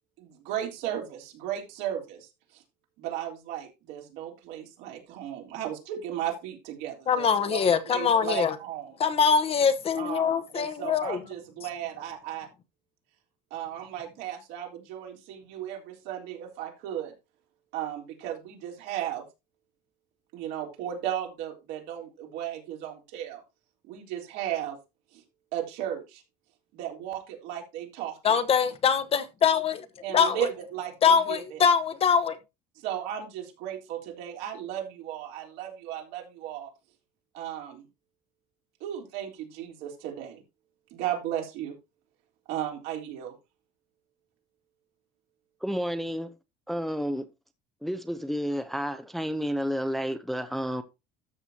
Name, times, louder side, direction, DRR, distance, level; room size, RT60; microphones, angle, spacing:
voice 1, 0.2-2.6 3.0-8.9 10.0-12.5 13.5-17.1 17.7-19.2 20.3-23.4 23.9-24.8 25.1-25.2 25.5-26.2 26.7-28.4 30.0-31.6 32.8-36.7 37.3-37.8 38.8-40.4 40.9-41.7 42.5-43.3, right 11 dB, 75° right, 3.7 m, -35 dB
voice 2, 7.1-8.5 9.0-11.2 28.2-29.8 30.1-30.5 31.0-32.4, left 6 dB, 35° left, 1.0 m, -23 dB
voice 3, 45.6-46.3 46.7-47.3 47.8-50.8, equal, ahead, 0.7 m, -30 dB
13.5 x 6.8 x 2.8 m
cardioid pair, 135°, 17 cm